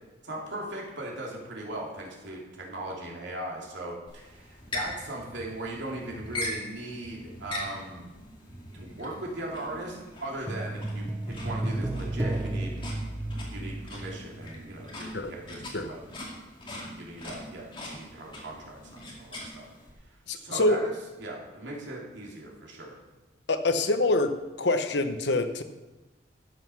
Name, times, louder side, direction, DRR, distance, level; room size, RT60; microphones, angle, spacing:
voice 1, 0.2-8.1 8.7-11.1 11.4-12.8 13.3-16.0 16.8-19.7 20.3-20.9 21.2-23.0, right 1 dB, 70° right, -3 dB, 2.9 m, -39 dB
sound 1, 4.1-19.9, left 1 dB, 25° left, 2.4 m, -41 dB
sound 2, 10.5-14.9 15.2-15.3, right 1 dB, 10° right, 0.4 m, -33 dB
voice 2, 20.3-20.8 23.5-24.3 24.6-25.6, left 2 dB, 65° left, 9 dB, 0.9 m, -25 dB
12.0 x 8.2 x 5.7 m, 1.1 s
head